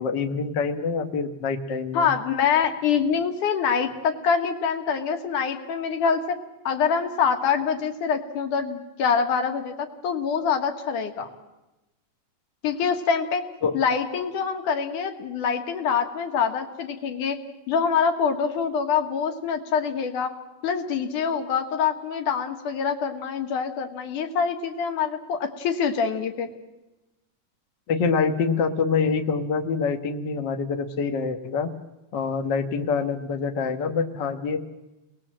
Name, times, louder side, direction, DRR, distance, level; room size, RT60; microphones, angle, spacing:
voice 1, 0.0-2.1 13.6-13.8 27.9-31.7 32.1-34.6, left 5 dB, 50° left, 6 dB, 1.4 m, -25 dB
voice 2, 1.9-6.4 6.6-11.3 12.6-13.4 13.7-17.4 17.7-20.3 20.6-26.5, left 6 dB, 70° left, 6 dB, 3.1 m, -25 dB
29.5 x 20.5 x 7.6 m, 1.0 s
omnidirectional pair, 3.9 m